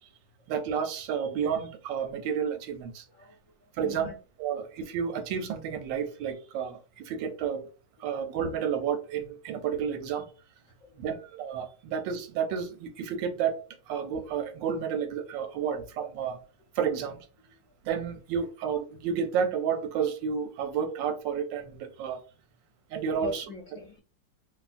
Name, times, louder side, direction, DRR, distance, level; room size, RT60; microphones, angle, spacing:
voice 1, 0.5-3.0 3.7-4.1 4.4-7.7 8.0-10.3 11.0-13.6 13.9-16.4 16.7-17.3 17.8-22.2 22.9-23.4, right 7 dB, 90° right, 1.3 m, -31 dB
voice 2, 3.1-4.2 8.0-8.1 10.7-11.1 17.6-17.7 23.2-24.0, left 2 dB, 65° left, 0.8 m, -42 dB
3.4 x 2.2 x 2.5 m
omnidirectional pair, 2.0 m